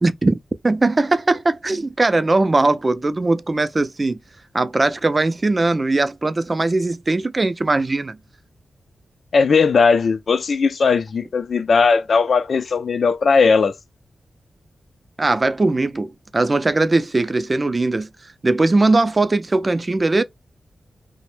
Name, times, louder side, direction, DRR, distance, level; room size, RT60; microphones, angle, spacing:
voice 1, 0.0-0.4 0.6-4.2 4.5-8.2 15.2-18.1 18.4-20.2, right 2 dB, 35° right, 0.4 m, -19 dB
voice 2, 9.3-13.7, left 5 dB, 70° left, 0.3 m, -17 dB
2.1 x 2.0 x 3.0 m
cardioid pair, 60°, 0 cm